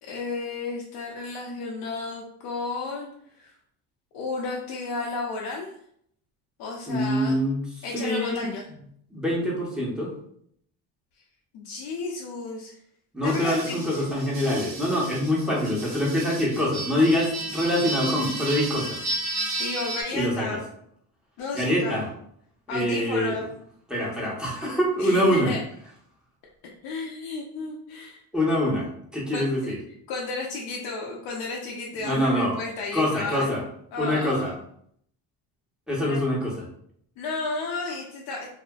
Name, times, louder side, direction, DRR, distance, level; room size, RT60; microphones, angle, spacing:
voice 1, 0.0-3.1 3.4-3.5 4.1-5.8 6.6-7.4 7.8-8.6 11.5-12.8 13.2-13.8 19.6-20.7 21.4-22.0 22.7-23.5 25.0-25.6 26.8-28.2 29.3-29.5 30.1-33.5 33.9-34.6 36.1-36.2 37.2-38.5, left 3 dB, 75° left, -2 dB, 0.6 m, -33 dB
voice 2, 6.9-8.5 9.1-10.1 13.1-19.0 20.1-20.6 21.5-22.1 22.7-23.4 23.9-25.5 28.3-29.8 32.0-32.6 32.9-33.6 34.0-34.5 35.9-36.6, equal, ahead, -4 dB, 1.0 m, -25 dB
sound 1, 13.3-20.0, right 2 dB, 75° right, 1.3 m, -33 dB
2.7 x 2.4 x 2.3 m, 0.67 s
cardioid pair, 95°, 38 cm